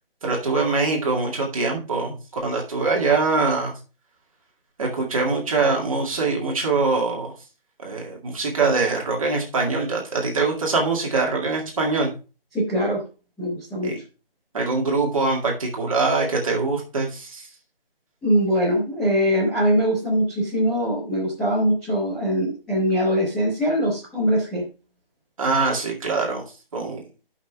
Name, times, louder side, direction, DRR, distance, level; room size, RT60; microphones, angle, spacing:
voice 1, 0.2-3.8 4.8-7.3 7.8-12.1 13.8-14.0 14.5-17.5 25.4-26.4 26.7-27.1, right 3 dB, 35° right, -1 dB, 2.1 m, -23 dB
voice 2, 12.5-13.0 13.4-13.9 18.2-24.6, equal, ahead, -16 dB, 1.0 m, -22 dB
16.0 x 5.7 x 2.3 m, 0.32 s
hypercardioid pair, 175°, 29 cm